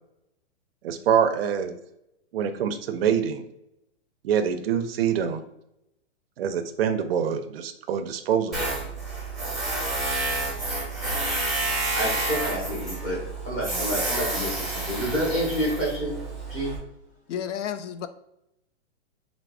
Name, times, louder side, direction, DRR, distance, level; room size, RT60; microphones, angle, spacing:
voice 1, 0.8-1.8 2.3-3.5 4.2-5.4 6.4-8.7, right 8 dB, 55° right, 8 dB, 0.4 m, -25 dB
Tools, 8.5-16.8, right 2 dB, ahead, 0.7 m, -29 dB
voice 2, 11.9-13.2 13.4-16.2 16.5-16.7, equal, 20° left, -6 dB, 0.9 m, -28 dB
voice 3, 17.3-18.1, left 9 dB, 85° left, 10 dB, 0.5 m, -31 dB
4.7 x 2.0 x 2.3 m, 0.82 s
hypercardioid pair, 150°, 36 cm